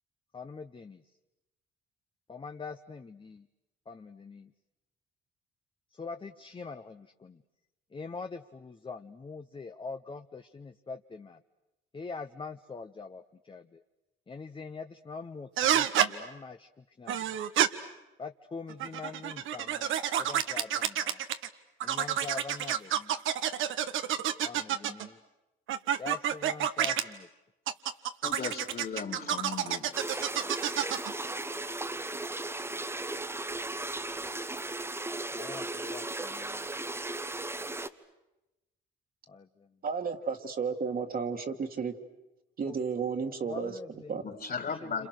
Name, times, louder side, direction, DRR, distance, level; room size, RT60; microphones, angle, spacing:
voice 1, 0.3-1.0 2.3-3.5 3.9-4.5 5.9-7.4 7.9-11.4 11.9-13.8 14.3-17.3 18.2-21.2 21.8-23.2 24.4-25.2 26.0-27.3 35.3-36.7 39.3-39.7 42.7-42.8 43.4-44.3 44.8-45.1, left 4 dB, 25° left, 7 dB, 0.8 m, -43 dB
sound 1, 15.6-16.1 17.1-17.7 18.7-21.5 21.8-25.1 25.7-27.0 27.7-31.1, right 10 dB, 80° right, 1.1 m, -29 dB
voice 2, 28.2-30.2 44.2-45.1, left 5 dB, 50° left, 5 dB, 3.5 m, -37 dB
sound 2, 29.9-37.9, right 2 dB, 10° right, 1.0 m, -36 dB
voice 3, 39.8-41.9 42.6-43.8 44.1-44.2, right 5 dB, 45° right, 5 dB, 1.9 m, -32 dB
28.5 x 27.0 x 6.6 m, 0.99 s
cardioid pair, 90°, 20 cm